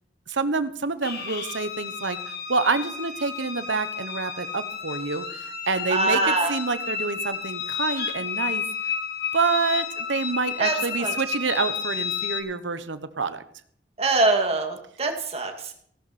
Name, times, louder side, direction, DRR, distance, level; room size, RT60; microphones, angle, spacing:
voice 1, 0.3-8.6 9.3-13.4, right 4 dB, 90° right, 11 dB, 1.1 m, -27 dB
sound 1, 1.0-12.4, left 6 dB, 60° left, 1.8 m, -31 dB
voice 2, 5.9-6.5 10.6-10.7 11.0-11.1 14.0-15.7, right 2 dB, 35° right, 4 dB, 2.2 m, -23 dB
16.5 x 12.0 x 4.3 m, 0.63 s
head